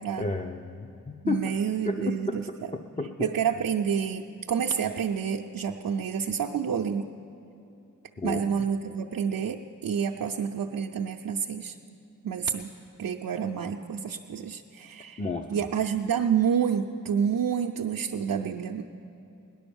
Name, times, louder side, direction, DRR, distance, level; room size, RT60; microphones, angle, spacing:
voice 1, 0.2-1.4 1.8-3.3 8.2-8.4 15.2-15.5, left 3 dB, 20° left, 4 dB, 0.6 m, -32 dB
voice 2, 1.2-2.5 3.2-7.1 8.2-11.8 12.2-12.7 13.0-15.2 15.5-18.8, right 7 dB, 75° right, 1 dB, 0.6 m, -28 dB
18.0 x 10.5 x 7.0 m, 2.8 s
wide cardioid pair, 85°, 34 cm